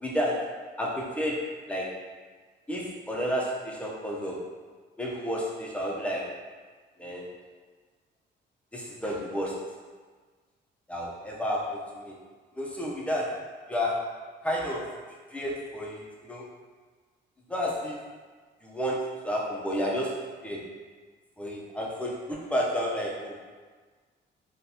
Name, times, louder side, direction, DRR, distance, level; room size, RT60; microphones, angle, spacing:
voice 1, 0.0-1.9 2.7-4.4 5.0-6.4 7.0-7.3 8.7-9.7 10.9-12.2 12.6-13.4 13.7-14.1 14.4-14.9 15.3-16.0 16.3-16.4 17.5-18.0 18.6-20.7 21.4-23.3, equal, 5° left, -3 dB, 0.7 m, -31 dB
3.8 x 2.3 x 2.8 m, 1.4 s
cardioid pair, 90°, 20 cm